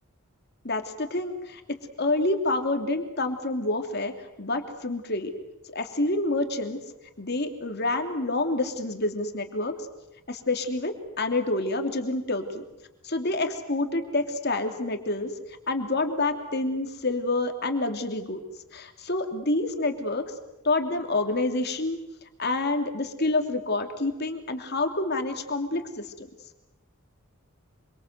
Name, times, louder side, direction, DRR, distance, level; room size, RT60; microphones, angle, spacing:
voice 1, 0.6-4.1 4.4-5.3 5.7-6.8 7.2-9.7 10.3-12.6 13.0-15.3 15.7-18.4 18.7-20.2 20.6-22.0 22.4-26.3, left 2 dB, 50° left, 6 dB, 2.9 m, -28 dB
26.0 x 24.5 x 8.1 m, 0.94 s
head